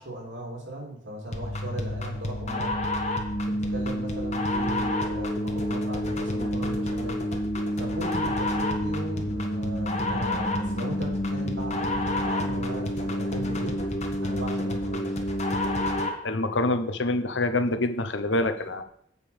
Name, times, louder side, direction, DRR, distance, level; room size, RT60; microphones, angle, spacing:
voice 1, 0.0-2.8 3.4-7.2 7.8-13.8 14.2-15.4, right 1 dB, 75° right, 0 dB, 3.1 m, -37 dB
sound 1, 1.3-16.3, left 1 dB, 35° left, 1.4 m, -28 dB
voice 2, 16.2-18.8, left 2 dB, 70° left, 9 dB, 1.0 m, -26 dB
8.2 x 5.1 x 7.1 m, 0.68 s
head